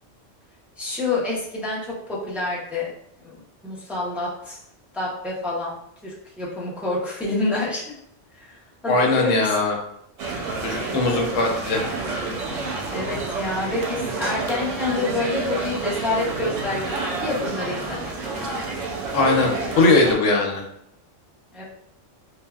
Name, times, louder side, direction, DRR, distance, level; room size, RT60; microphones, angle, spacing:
voice 1, 0.8-2.9 3.2-4.6 4.9-7.9 8.3-9.6 12.9-18.1 21.5-21.6, left 2 dB, ahead, -6 dB, 0.4 m, -28 dB
voice 2, 8.9-9.7 10.6-11.8 19.1-20.6, left 3 dB, 85° left, 1 dB, 1.0 m, -20 dB
sound 1, 10.2-20.1, right 3 dB, 85° right, 0.9 m, -29 dB
3.3 x 2.2 x 2.3 m, 0.72 s
omnidirectional pair, 1.3 m